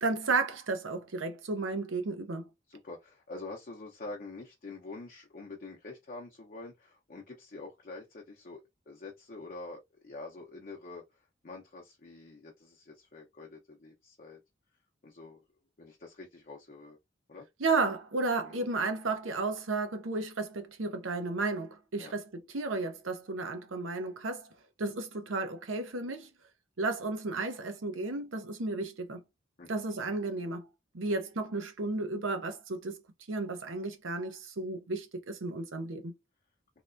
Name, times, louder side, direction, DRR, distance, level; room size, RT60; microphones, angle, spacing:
voice 1, 0.0-2.5 17.6-24.5 24.8-26.3 26.8-29.2 29.7-30.7 30.9-33.0 33.3-36.1, right 3 dB, 85° right, 0.8 m, -33 dB
voice 2, 2.7-14.4 15.0-15.4 15.8-17.0 17.3-17.5 18.4-18.6 22.0-22.1 29.6-29.7, left 3 dB, 45° left, 0.7 m, -46 dB
3.2 x 2.8 x 2.5 m
head